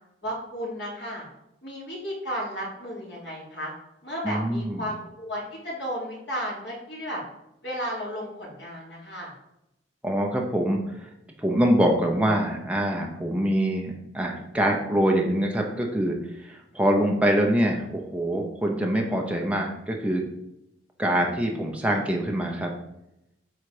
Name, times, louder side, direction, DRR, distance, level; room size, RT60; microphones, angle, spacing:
voice 1, 0.2-1.2 1.6-3.7 4.0-7.2 7.6-9.3, equal, 65° left, -6 dB, 3.1 m, -33 dB
voice 2, 4.2-4.9 10.0-11.1 11.4-20.2 21.0-22.7, right 1 dB, 5° right, 0 dB, 0.9 m, -24 dB
8.1 x 4.1 x 5.0 m, 0.85 s
head